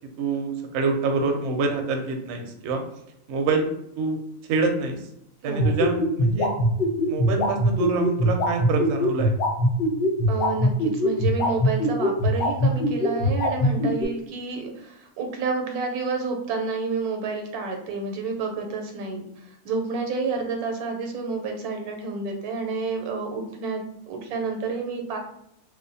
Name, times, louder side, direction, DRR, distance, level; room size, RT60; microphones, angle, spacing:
voice 1, 0.2-2.8 3.3-3.7 4.0-4.2 4.5-5.0 5.4-6.5 7.1-9.3, right 4 dB, 65° right, 4 dB, 0.7 m, -26 dB
voice 2, 5.4-5.8 10.3-19.3 19.6-25.2, right 4 dB, 90° right, 3 dB, 1.1 m, -29 dB
sound 1, 5.6-14.1, left 1 dB, 60° left, 0.9 m, -21 dB
2.5 x 2.0 x 2.6 m, 0.76 s
omnidirectional pair, 1.6 m